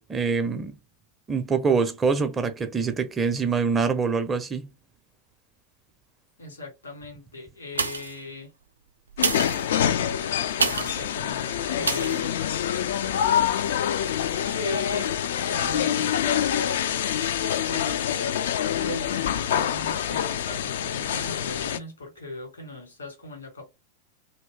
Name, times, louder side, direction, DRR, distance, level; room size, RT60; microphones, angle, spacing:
voice 1, 0.1-0.7 1.3-4.7, right 5 dB, 20° right, 0.5 m, -24 dB
voice 2, 6.4-8.5 9.8-10.1 10.5-12.4 14.4-23.6, left 2 dB, 75° left, 1.7 m, -37 dB
sound 1, 7.7-8.3 9.1-11.1 11.8-12.2 12.7-12.8, right 4 dB, 75° right, 0.4 m, -28 dB
sound 2, 9.2-21.8, left 10 dB, 60° left, 0.3 m, -26 dB
2.7 x 2.7 x 3.4 m
figure-of-eight pair, 90°, 0 cm